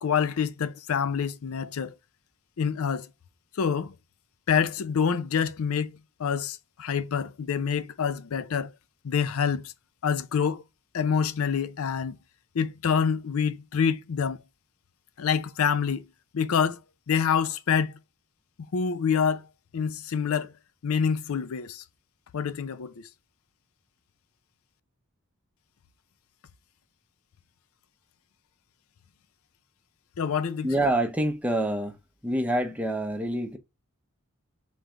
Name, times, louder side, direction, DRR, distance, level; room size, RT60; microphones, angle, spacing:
voice 1, 0.0-1.9 2.6-3.1 3.6-3.9 4.5-8.7 9.0-9.7 10.0-10.6 10.9-12.2 12.5-14.4 15.2-16.1 16.3-16.8 17.1-18.0 18.7-19.5 19.7-20.5 20.8-21.8 22.3-23.1 30.2-30.7, left 6 dB, 80° left, 0.5 m, -26 dB
voice 2, 30.6-32.0 32.2-33.6, right 1 dB, 5° right, 0.6 m, -26 dB
3.4 x 3.2 x 3.6 m
head